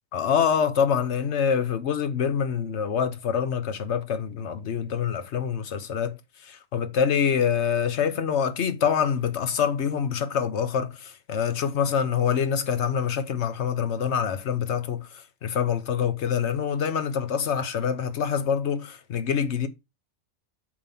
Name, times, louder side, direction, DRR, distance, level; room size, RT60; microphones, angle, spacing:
voice 1, 0.1-19.7, left 7 dB, 70° left, 1.2 m, -26 dB
8.8 x 3.1 x 5.8 m
omnidirectional pair, 1.2 m